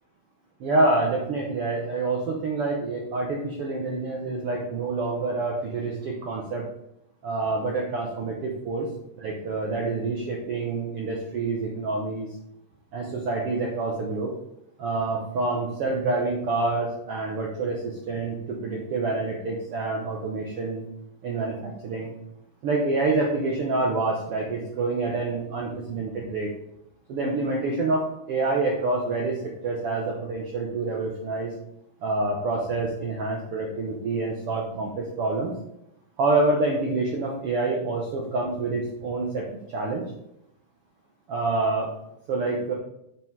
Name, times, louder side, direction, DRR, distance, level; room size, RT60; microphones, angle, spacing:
voice 1, 0.6-6.6 7.2-8.9 9.2-12.3 12.9-14.3 14.8-20.8 21.2-22.1 22.6-26.5 27.1-31.5 32.0-35.5 36.2-39.4 39.7-40.0 41.3-41.9 42.3-42.7, right 3 dB, 85° right, -1 dB, 1.2 m, -27 dB
7.5 x 5.6 x 4.7 m, 0.82 s
omnidirectional pair, 4.1 m